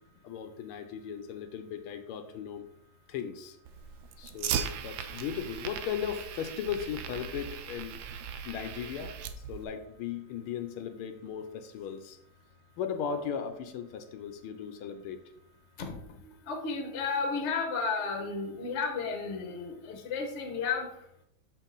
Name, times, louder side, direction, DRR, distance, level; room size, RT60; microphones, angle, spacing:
voice 1, 0.2-2.7 3.1-3.6 4.2-8.0 8.4-9.1 9.5-12.2 12.8-15.2, left 8 dB, 80° left, 8 dB, 1.5 m, -37 dB
Fire, 3.6-9.6, right 8 dB, 75° right, 1.2 m, -38 dB
voice 2, 15.8-21.0, left 4 dB, 45° left, 4 dB, 1.1 m, -33 dB
7.3 x 4.5 x 3.9 m, 0.74 s
omnidirectional pair, 2.4 m